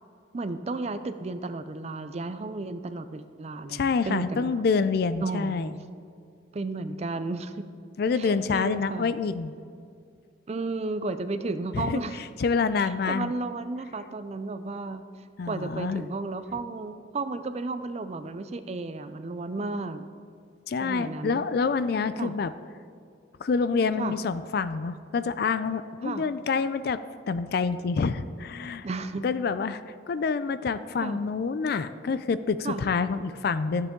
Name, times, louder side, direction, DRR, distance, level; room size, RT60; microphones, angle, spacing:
voice 1, 0.3-4.5 5.2-5.8 6.5-7.7 8.2-9.1 10.5-12.2 12.8-15.0 15.4-20.1 20.8-21.5 22.2-22.3 24.0-24.1 26.0-26.2 28.8-29.2 31.0-31.2 32.6-32.8, right 3 dB, 35° right, 11 dB, 0.4 m, -33 dB
voice 2, 3.6-5.7 8.0-9.5 11.7-12.0 12.4-13.3 15.4-16.0 20.7-22.5 23.4-27.0 27.3-28.9 29.2-29.8 30.1-33.9, left 5 dB, 55° left, 13 dB, 0.4 m, -27 dB
13.0 x 7.6 x 3.7 m, 2.4 s
head